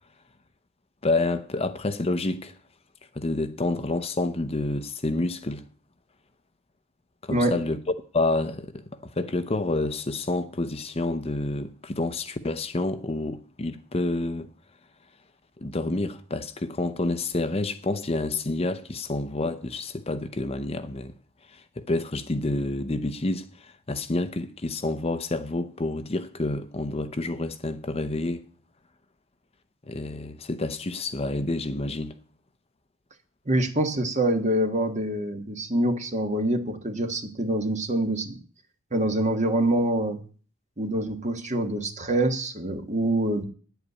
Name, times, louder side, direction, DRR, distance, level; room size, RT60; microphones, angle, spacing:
voice 1, 1.0-2.5 3.1-5.6 7.2-7.8 8.1-14.5 15.6-21.1 21.5-28.4 29.9-32.2, left 2 dB, 30° left, 0.6 m, -28 dB
voice 2, 33.5-38.4 38.9-40.2 40.8-43.4, right 1 dB, 35° right, 1.4 m, -25 dB
9.7 x 8.1 x 8.3 m
head